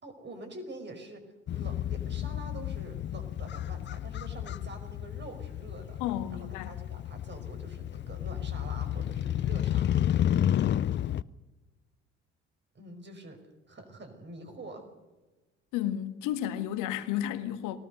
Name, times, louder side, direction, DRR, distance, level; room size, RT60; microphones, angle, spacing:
voice 1, 0.0-1.3 1.5-6.0 6.3-10.1 12.7-13.4 13.7-14.8, right 2 dB, 30° right, 5.3 m, -46 dB
Motorcycle, 1.5-11.2, left 11 dB, 30° left, 0.6 m, -31 dB
voice 2, 6.0-6.7 15.7-17.8, left 11 dB, 55° left, 1.8 m, -32 dB
22.5 x 18.5 x 6.6 m
figure-of-eight pair, 55°, 36 cm